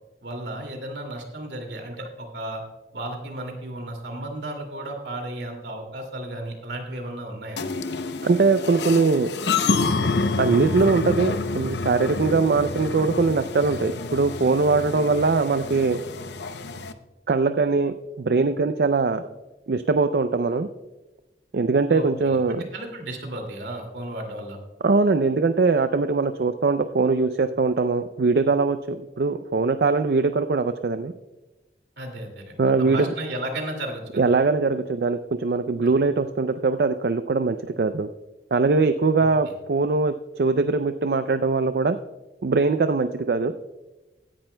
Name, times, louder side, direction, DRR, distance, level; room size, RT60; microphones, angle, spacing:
voice 1, 0.2-2.6 2.9-7.8 21.9-24.6 32.0-34.3 35.8-36.0 39.2-39.6, right 1 dB, 80° right, 3 dB, 2.4 m, -34 dB
sound 1, 7.6-16.9, left 3 dB, 75° left, 0.7 m, -28 dB
voice 2, 8.2-9.3 10.4-16.0 17.3-19.2 19.7-20.7 21.5-22.7 24.8-31.1 32.6-33.1 34.2-38.1 38.5-42.0 42.4-43.5, right 4 dB, 60° right, 10 dB, 0.4 m, -21 dB
16.5 x 10.5 x 2.2 m, 1.1 s
head